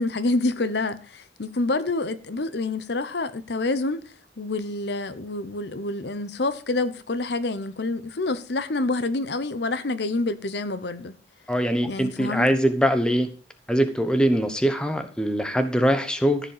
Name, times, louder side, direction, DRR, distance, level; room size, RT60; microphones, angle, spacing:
voice 1, 0.0-4.0 4.4-11.1 11.8-12.5, left 2 dB, 65° left, 0.8 m, -27 dB
voice 2, 11.5-13.3 13.7-16.4, equal, 5° left, 1.0 m, -22 dB
14.0 x 5.2 x 6.7 m
head